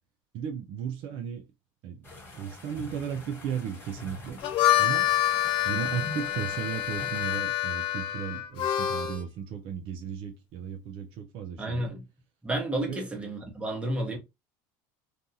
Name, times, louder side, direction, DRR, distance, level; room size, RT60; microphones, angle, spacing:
voice 1, 0.3-1.5 1.8-4.4 4.8-5.1 5.6-11.9 12.9-13.1, right 8 dB, 55° right, 0.5 m, -35 dB
sound 1, 2.0-7.4, left 1 dB, 20° left, 1.1 m, -44 dB
Harmonica, 4.3-9.2, left 13 dB, 55° left, 0.5 m, -27 dB
voice 2, 11.6-12.0 12.4-14.2, right 1 dB, 10° right, 1.0 m, -31 dB
2.6 x 2.3 x 2.6 m
supercardioid pair, 115°, 11 cm